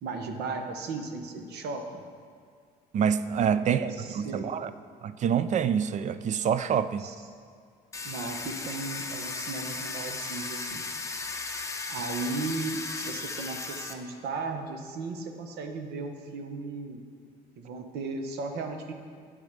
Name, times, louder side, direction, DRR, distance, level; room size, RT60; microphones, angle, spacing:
voice 1, 0.0-2.0 3.5-4.5 7.0-7.1 8.0-10.9 11.9-17.0 17.6-18.9, right 3 dB, 75° right, 5 dB, 1.0 m, -36 dB
voice 2, 2.9-4.7 5.0-7.0, right 8 dB, 45° right, 13 dB, 0.4 m, -26 dB
Domestic sounds home sounds, 7.9-13.9, left 3 dB, 20° left, 0.7 m, -36 dB
10.0 x 5.2 x 6.6 m, 2.1 s
cardioid pair, 110°, 17 cm